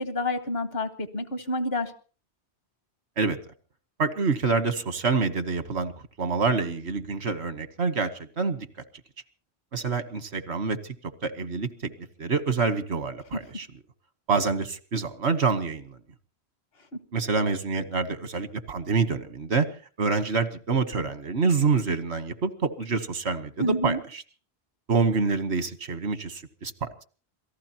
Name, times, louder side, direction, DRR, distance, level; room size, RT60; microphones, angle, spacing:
voice 1, 0.0-1.9 16.9-17.0 23.6-24.0, left 1 dB, 65° left, 9 dB, 1.7 m, -28 dB
voice 2, 4.0-5.9 6.2-8.7 9.7-10.9 11.2-11.9 12.2-13.7 14.3-16.0 17.1-19.7 20.0-24.2 24.9-27.0, right 4 dB, 85° right, 11 dB, 1.6 m, -27 dB
27.0 x 18.5 x 2.9 m, 0.39 s
omnidirectional pair, 1.1 m